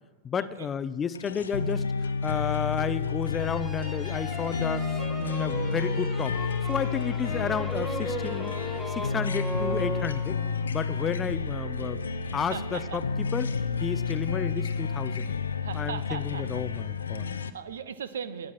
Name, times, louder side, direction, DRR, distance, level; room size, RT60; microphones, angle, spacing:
voice 1, 0.2-6.4 6.7-8.6 8.9-10.4 10.7-12.0 12.3-13.5 13.8-15.3 15.7-17.3, left 7 dB, 20° left, 16 dB, 0.5 m, -32 dB
sound 1, 1.1-17.5, left 5 dB, 70° left, 0.7 m, -30 dB
sound 2, 3.4-10.6, right 1 dB, 5° right, 2.1 m, -37 dB
voice 2, 12.5-13.0 13.8-13.9 15.6-16.6 17.2-18.5, right 7 dB, 65° right, 14 dB, 0.9 m, -38 dB
19.5 x 11.0 x 4.6 m, 1.2 s
figure-of-eight pair, 90°, 0 cm